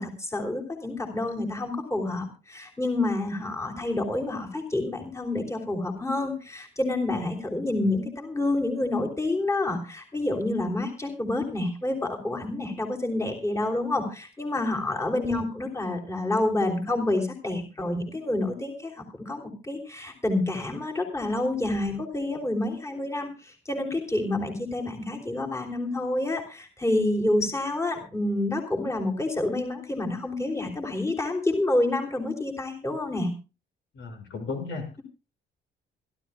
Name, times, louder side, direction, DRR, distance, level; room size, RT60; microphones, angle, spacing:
voice 1, 0.0-33.3, left 2 dB, 15° left, 2 dB, 3.2 m, -28 dB
voice 2, 33.9-34.8, left 4 dB, 70° left, 4 dB, 6.2 m, -35 dB
26.5 x 12.5 x 2.3 m, 0.31 s
cardioid pair, 90°, 20 cm